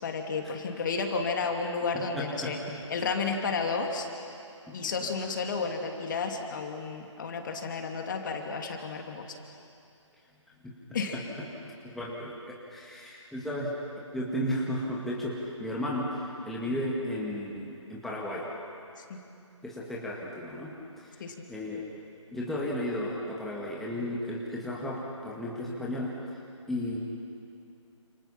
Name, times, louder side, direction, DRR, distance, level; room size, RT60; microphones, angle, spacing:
voice 1, 0.0-2.6 2.9-4.1 4.7-9.4 10.9-11.2 19.0-19.2 21.2-21.3, left 4 dB, 40° left, 3 dB, 2.6 m, -32 dB
voice 2, 1.9-2.8 4.7-5.1 10.6-10.7 11.1-11.2 11.6-13.7 14.1-18.4 19.6-21.2 21.5-21.8 22.3-26.1 26.7-27.0, left 1 dB, ahead, -6 dB, 2.2 m, -34 dB
30.0 x 28.5 x 5.9 m, 2.6 s
figure-of-eight pair, 155°, 17 cm